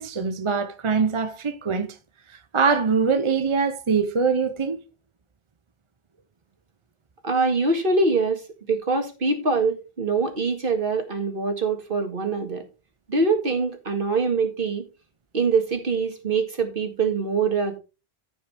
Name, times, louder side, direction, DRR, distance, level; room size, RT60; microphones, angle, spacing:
voice 1, 0.0-1.9 2.3-4.8, right 5 dB, 35° right, 0.7 m, -23 dB
voice 2, 7.2-12.6 13.1-14.8 15.3-17.8, right 4 dB, 55° right, 2.1 m, -24 dB
14.5 x 5.4 x 3.4 m
omnidirectional pair, 1.1 m